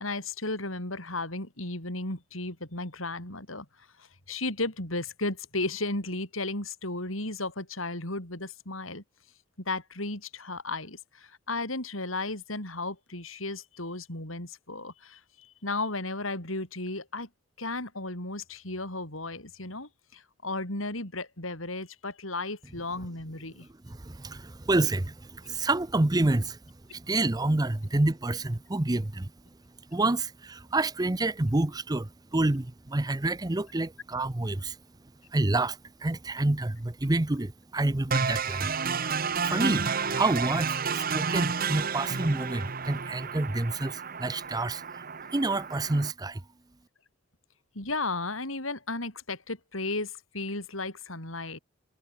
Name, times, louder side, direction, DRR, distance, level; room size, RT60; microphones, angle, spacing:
voice 1, 0.0-3.7 4.0-9.0 9.6-17.3 17.6-23.7 47.7-51.6, left 2 dB, 85° left, 7.9 m, -34 dB
voice 2, 23.8-26.6 26.9-29.3 29.9-34.8 35.3-38.7 39.4-40.7 40.9-45.0 45.3-46.4, right 2 dB, 20° right, 0.7 m, -28 dB
sound 1, 38.1-46.1, right 5 dB, 45° right, 1.3 m, -31 dB
head